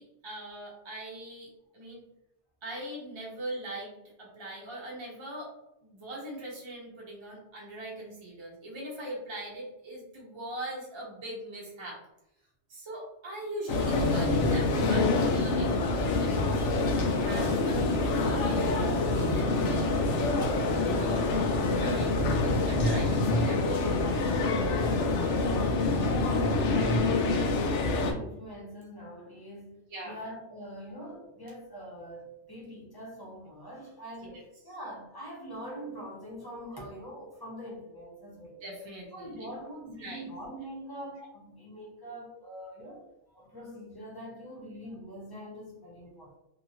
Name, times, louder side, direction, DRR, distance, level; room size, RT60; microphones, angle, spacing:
voice 1, 0.0-2.1 2.6-5.5 5.8-12.0 12.7-18.7 19.3-20.5 20.9-21.3 21.6-24.0 29.9-30.2 34.2-34.4 38.6-39.5 40.0-40.3, right 1 dB, 30° right, -4 dB, 0.7 m, -41 dB
sound 1, 13.7-28.1, left 3 dB, 90° left, 0.9 m, -26 dB
sound 2, 13.8-16.8 17.3-20.3, right 3 dB, 60° right, 1.0 m, -44 dB
voice 2, 26.6-38.6 39.1-43.1 43.3-46.4, equal, 25° left, -4 dB, 0.8 m, -43 dB
2.8 x 2.8 x 2.7 m, 0.85 s
omnidirectional pair, 1.2 m